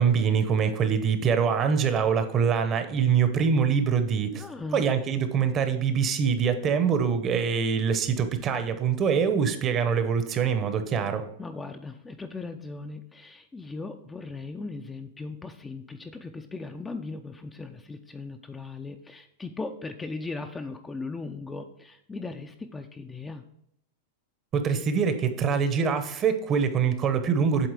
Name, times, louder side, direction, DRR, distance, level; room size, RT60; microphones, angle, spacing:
voice 1, 0.0-4.4 4.7-11.2 24.5-27.7, right 6 dB, 30° right, 9 dB, 0.8 m, -24 dB
voice 2, 4.3-4.9 11.4-23.4, left 3 dB, 10° left, 6 dB, 0.4 m, -38 dB
8.0 x 3.6 x 4.8 m, 0.75 s
hypercardioid pair, 130°, 0 cm